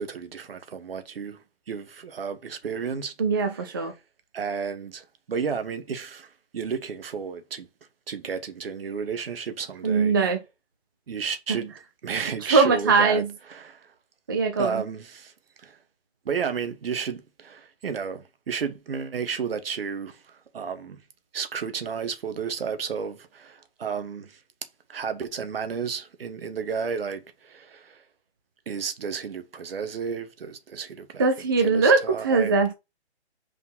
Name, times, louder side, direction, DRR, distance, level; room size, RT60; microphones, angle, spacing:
voice 1, 0.0-3.9 4.3-7.7 8.1-10.1 11.1-11.7 12.0-13.2 13.5-13.9 14.6-15.3 15.6-15.8 16.2-21.0 21.3-24.4 24.9-28.0 28.7-32.5, right 6 dB, 60° right, 1.3 m, -32 dB
voice 2, 3.2-3.9 9.8-10.4 11.5-11.6 12.4-13.3 14.3-14.8 31.2-32.7, right 4 dB, 20° right, 0.5 m, -21 dB
5.3 x 4.1 x 5.5 m
hypercardioid pair, 165°, 33 cm